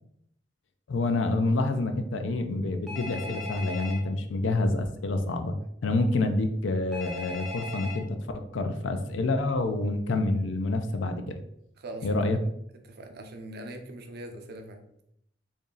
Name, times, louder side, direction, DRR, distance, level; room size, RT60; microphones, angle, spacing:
voice 1, 0.9-5.5 5.8-8.2 8.5-11.4 12.0-12.4, left 2 dB, 80° left, 6 dB, 0.5 m, -27 dB
Telephone, 2.9-4.0 6.9-8.0, left 3 dB, ahead, 0.6 m, -38 dB
voice 2, 11.8-12.5 12.8-14.8, right 1 dB, 55° right, 5 dB, 0.5 m, -42 dB
3.0 x 2.7 x 3.7 m, 0.74 s
head